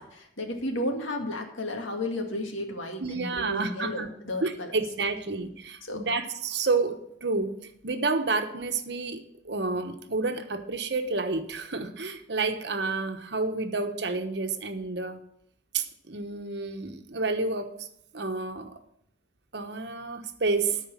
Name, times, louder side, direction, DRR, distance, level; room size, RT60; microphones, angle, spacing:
voice 1, 0.0-4.7 5.8-6.0, left 1 dB, 90° left, 2 dB, 2.1 m, -33 dB
voice 2, 3.0-4.1 4.4-7.5 7.8-15.2 15.7-17.7 18.1-18.7 19.5-20.8, right 3 dB, 60° right, 6 dB, 1.1 m, -30 dB
13.5 x 4.7 x 7.3 m, 0.75 s
head